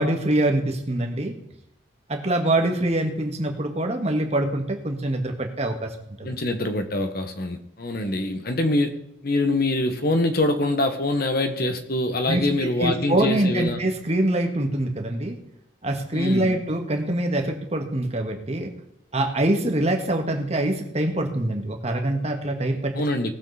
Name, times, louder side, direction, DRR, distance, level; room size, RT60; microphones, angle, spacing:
voice 1, 0.0-1.3 2.1-6.4 12.3-15.4 15.8-18.7 19.1-22.9, right 1 dB, 35° right, 3 dB, 1.7 m, -24 dB
voice 2, 6.2-8.9 9.2-13.8 16.1-16.5 23.0-23.3, left 2 dB, 50° left, 7 dB, 1.4 m, -24 dB
19.0 x 7.3 x 4.2 m, 0.80 s
head